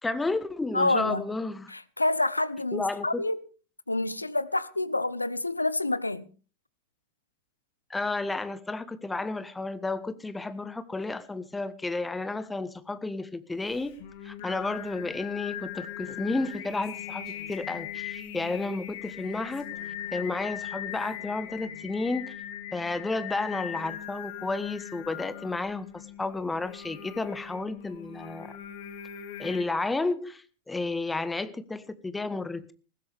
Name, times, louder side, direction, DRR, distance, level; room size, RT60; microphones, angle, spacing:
voice 1, 0.0-1.7 2.7-3.2 7.9-13.9 14.2-19.7 20.1-22.3 22.7-28.5 29.4-32.7, left 3 dB, 10° left, 1.3 m, -32 dB
voice 2, 0.7-1.3 1.7-3.4 3.9-6.3, left 2 dB, 85° left, 0.8 m, -28 dB
Singing, 13.7-29.6, left 10 dB, 50° left, 2.8 m, -40 dB
Female speech woman speaking, 16.1-18.0 19.0-20.4 20.9-21.9, left 7 dB, 35° left, 5.5 m, -53 dB
20.0 x 15.5 x 3.5 m
figure-of-eight pair, 90°, 0 cm